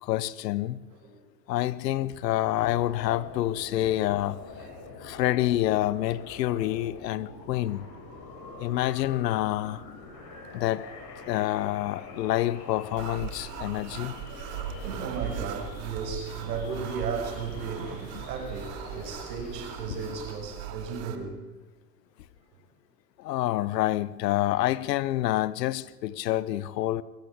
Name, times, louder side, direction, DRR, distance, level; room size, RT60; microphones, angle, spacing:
voice 1, 0.0-0.8 1.5-4.4 5.0-7.9 8.6-9.8 10.5-10.9 11.3-14.1 18.1-18.2 23.2-27.0, left 14 dB, 85° left, 1.0 m, -27 dB
sound 1, 2.4-20.4, left 4 dB, 55° left, 7.6 m, -45 dB
voice 2, 4.6-5.2 8.1-8.6 13.5-13.8 14.3-21.4, right 5 dB, 85° right, 6.4 m, -36 dB
sound 2, 13.0-21.2, right 9 dB, 65° right, 2.5 m, -39 dB
23.5 x 15.0 x 8.5 m
hypercardioid pair, 95°, 48 cm